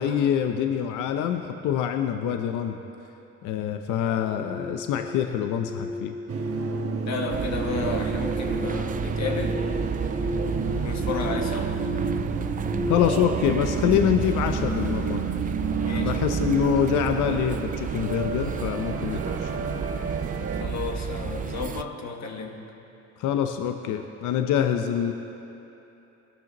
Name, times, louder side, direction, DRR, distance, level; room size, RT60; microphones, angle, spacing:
voice 1, 0.0-2.8 3.4-6.1 12.9-15.2 15.9-19.8 23.2-25.1, left 9 dB, 90° left, 6 dB, 0.7 m, -25 dB
sound 1, 4.2-15.2, left 2 dB, 10° right, 1.1 m, -37 dB
sound 2, 6.3-20.6, right 5 dB, 50° right, 1.1 m, -30 dB
voice 2, 7.1-9.7 10.5-11.8 15.8-16.2 20.6-22.7, left 5 dB, 65° left, 3 dB, 1.4 m, -32 dB
sound 3, 7.3-21.8, right 7 dB, 30° right, 0.4 m, -32 dB
20.5 x 12.0 x 3.0 m, 3.0 s
cardioid pair, 90°, 30 cm